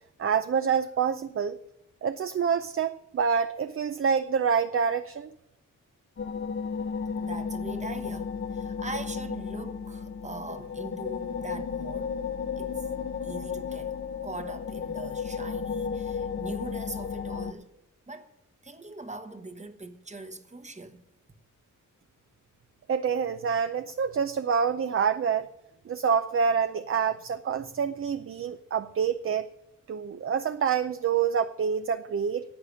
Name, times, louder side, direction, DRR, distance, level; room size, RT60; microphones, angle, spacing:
voice 1, 0.2-1.6 2.0-5.3 22.9-25.5 25.9-29.5 29.9-32.4, right 6 dB, 45° right, 0.5 m, -27 dB
sound 1, 6.2-17.5, left 6 dB, 40° left, 0.7 m, -33 dB
voice 2, 7.2-12.1 12.6-12.9 13.2-17.7 18.1-18.3 18.6-21.0, right 2 dB, 20° right, 1.0 m, -41 dB
11.5 x 8.5 x 8.3 m
wide cardioid pair, 110°, 32 cm